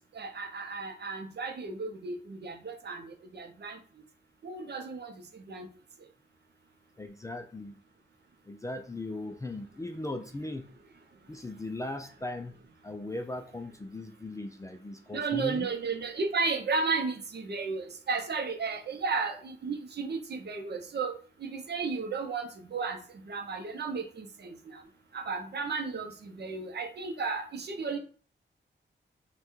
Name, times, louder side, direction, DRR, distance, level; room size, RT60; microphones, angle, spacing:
voice 1, 0.2-3.8 4.4-5.1 5.5-5.7 15.1-21.1 21.4-23.0 23.3-24.5 25.1-28.0, right 4 dB, 55° right, 5 dB, 0.7 m, -33 dB
voice 2, 7.0-7.7 8.5-10.7 11.3-12.5 12.8-15.7, left 2 dB, 15° left, 5 dB, 0.3 m, -38 dB
5.4 x 2.3 x 3.1 m, 0.43 s
wide cardioid pair, 160°, 20 cm